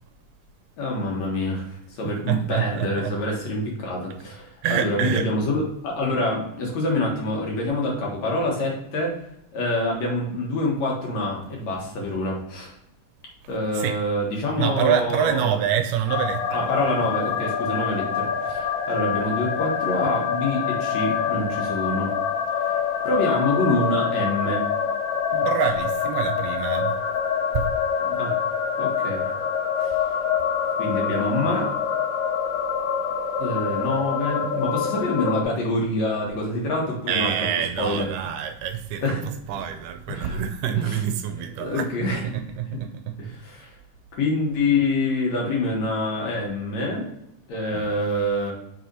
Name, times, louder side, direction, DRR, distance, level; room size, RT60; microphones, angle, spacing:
voice 1, 0.8-1.7 2.0-9.2 9.5-12.7 13.5-15.6 16.5-22.1 22.6-22.7 23.0-24.6 28.0-28.4 28.7-29.3 29.8-29.9 30.8-31.7 33.4-37.5 37.8-38.1 39.0-39.3 40.1-40.4 40.7-41.0 41.6-42.2 43.2-43.7 44.2-47.1 47.5-48.5, left 2 dB, 60° left, -2 dB, 2.6 m, -26 dB
voice 2, 2.0-3.1 4.6-5.3 13.7-14.0 14.6-17.0 25.3-27.0 27.5-27.7 37.1-39.0 39.5-43.2 47.7-47.9, right 9 dB, 90° right, 7 dB, 2.1 m, -26 dB
sound 1, 16.1-35.4, left 7 dB, 90° left, 2.3 m, -26 dB
5.7 x 4.7 x 4.0 m, 0.80 s
omnidirectional pair, 3.6 m